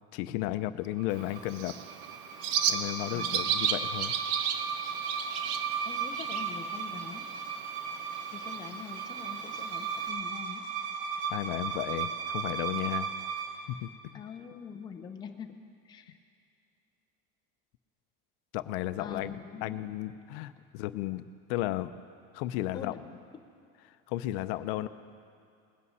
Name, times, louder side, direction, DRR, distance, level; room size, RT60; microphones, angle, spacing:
voice 1, 0.1-1.7 2.7-4.1 11.3-13.1 13.7-13.9 18.5-22.0 22.3-22.9 23.9-24.9, left 15 dB, 75° left, 13 dB, 0.6 m, -34 dB
sound 1, 1.0-13.7, right 6 dB, 85° right, 1.7 m, -36 dB
Bird, 1.1-10.1, right 8 dB, 55° right, 0.7 m, -35 dB
voice 2, 3.1-3.5 5.8-7.2 8.3-10.6 14.1-15.6 15.8-16.2 19.0-19.9 22.7-23.0, left 7 dB, 15° left, 4 dB, 0.5 m, -44 dB
20.0 x 8.4 x 5.5 m, 2.4 s
cardioid pair, 175°, 30 cm